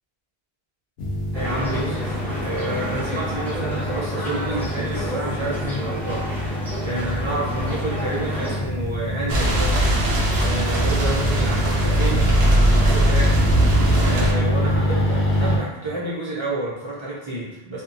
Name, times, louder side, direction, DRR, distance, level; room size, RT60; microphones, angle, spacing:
sound 1, 1.0-15.6, equal, 70° left, 0.8 m, -25 dB
sound 2, 1.3-8.6, left 1 dB, ahead, 0.6 m, -31 dB
voice 1, 1.3-9.7 10.4-13.4 14.0-17.8, right 2 dB, 40° right, -7 dB, 0.4 m, -29 dB
sound 3, 9.3-14.3, right 1 dB, 85° right, 0.9 m, -20 dB
2.8 x 2.1 x 2.5 m, 1.1 s
omnidirectional pair, 1.1 m